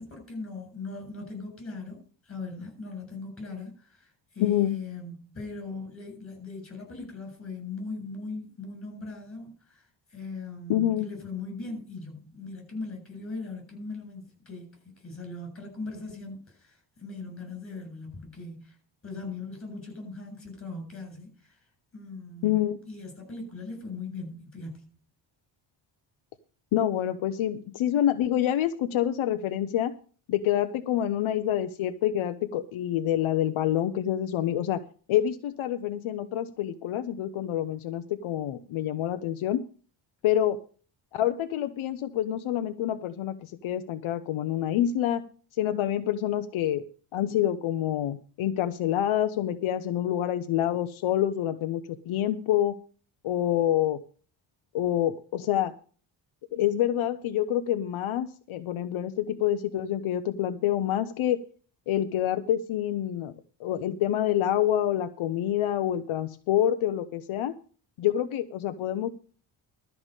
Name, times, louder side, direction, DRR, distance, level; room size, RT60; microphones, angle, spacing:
voice 1, 0.0-2.0 2.2-18.8 19.0-21.6 21.9-22.6 22.9-24.9, left 3 dB, 25° left, 3 dB, 7.7 m, -39 dB
voice 2, 4.4-4.8 10.7-11.1 22.4-22.8 26.7-29.9 30.3-34.8 35.1-39.6 40.2-40.6 41.1-45.2 45.6-46.8 47.1-52.7 53.2-54.0 54.7-55.7 56.5-61.4 61.9-63.3 63.6-67.5 68.0-69.1, left 11 dB, 80° left, 9 dB, 0.9 m, -27 dB
13.0 x 5.8 x 8.2 m, 0.40 s
cardioid pair, 145°, 48 cm